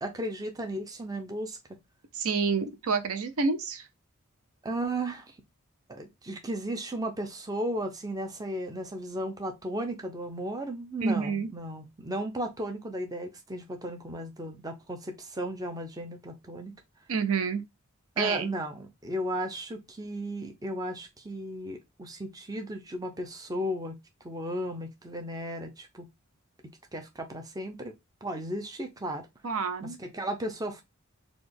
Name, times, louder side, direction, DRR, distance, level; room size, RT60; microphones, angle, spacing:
voice 1, 0.0-1.6 4.6-5.4 5.9-16.7 18.2-23.9 24.2-26.1 26.9-27.9 28.2-29.3 29.8-30.8, right 1 dB, 15° right, 0.5 m, -35 dB
voice 2, 2.1-3.9 11.0-11.5 17.1-17.6 18.2-18.5 29.4-30.0, right 5 dB, 75° right, 0.5 m, -28 dB
4.1 x 2.3 x 3.3 m
head